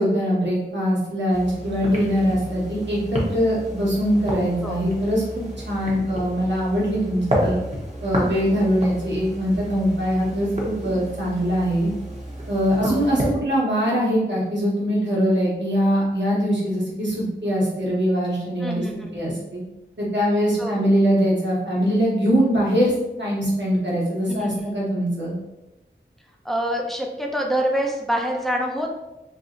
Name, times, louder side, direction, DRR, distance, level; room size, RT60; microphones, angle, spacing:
voice 1, 0.0-7.6 8.0-11.9 12.5-19.6 20.0-22.9 23.2-25.4, equal, 65° right, -6 dB, 1.2 m, -22 dB
sound 1, 1.3-13.3, equal, 35° right, 0.9 m, -31 dB
voice 2, 18.6-19.2 20.6-20.8 24.3-24.7 26.4-28.9, equal, ahead, 1 dB, 0.5 m, -26 dB
2.7 x 2.0 x 3.6 m, 0.96 s
wide cardioid pair, 40°, 20 cm